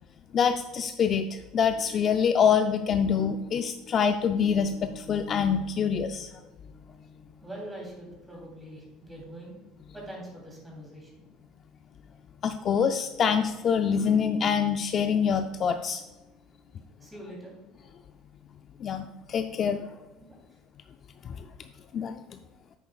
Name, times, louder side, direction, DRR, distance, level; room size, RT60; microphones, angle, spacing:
voice 1, 0.3-6.3 12.4-16.0 18.8-19.8 21.2-21.3 21.9-22.2, left 7 dB, 35° left, 7 dB, 0.4 m, -25 dB
voice 2, 7.4-9.5 9.9-11.1 17.0-17.6 20.1-20.4, right 1 dB, 10° right, -2 dB, 3.1 m, -43 dB
10.0 x 8.4 x 2.4 m, 1.1 s
cardioid pair, 150°, 0 cm